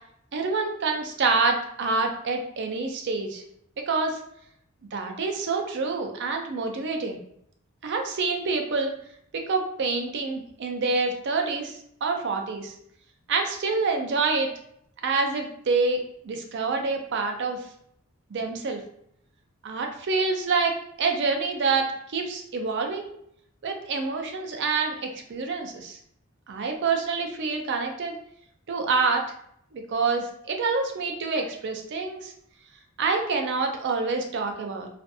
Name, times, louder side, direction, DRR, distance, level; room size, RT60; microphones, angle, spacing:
voice 1, 0.3-3.4 3.8-4.2 4.9-7.2 7.8-8.9 9.3-12.7 13.3-14.5 15.0-17.7 18.3-18.8 19.6-23.1 23.6-26.0 26.5-28.2 28.7-29.2 29.7-32.3 33.0-34.9, right 4 dB, 55° right, 3 dB, 0.4 m, -27 dB
2.5 x 2.5 x 2.3 m, 0.69 s
head